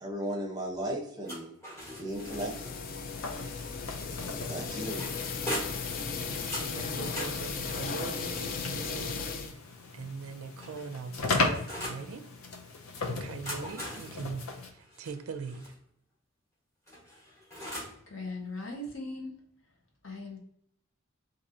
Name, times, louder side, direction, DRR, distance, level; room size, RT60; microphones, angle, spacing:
voice 1, 0.0-1.5 2.0-2.7 3.5-5.0, right 1 dB, 20° right, 0.7 m, -37 dB
sound 1, 1.2-2.8 4.2-5.9 6.5-9.4 10.2-12.1 13.2-15.7 16.9-18.0, equal, 15° left, 1.2 m, -42 dB
sound 2, 2.1-9.5, left 5 dB, 40° left, 0.3 m, -36 dB
sound 3, 3.1-14.7, left 3 dB, 85° left, 0.6 m, -37 dB
voice 2, 6.6-9.6 9.9-12.2 13.0-15.7, right 5 dB, 85° right, 0.4 m, -41 dB
voice 3, 18.1-19.4 20.0-20.4, left 2 dB, 65° left, 1.0 m, -39 dB
4.1 x 2.7 x 2.6 m
head